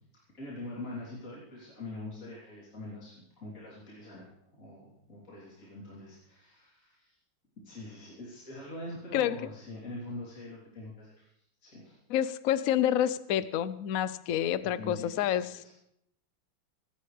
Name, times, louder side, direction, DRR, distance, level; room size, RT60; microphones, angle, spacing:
voice 1, 0.3-7.2 7.6-11.2 11.6-12.0 14.7-15.7, left 1 dB, 40° left, -6 dB, 3.7 m, -44 dB
voice 2, 12.1-15.5, left 11 dB, 65° left, 14 dB, 0.9 m, -28 dB
24.5 x 12.0 x 3.3 m, 0.74 s
omnidirectional pair, 2.2 m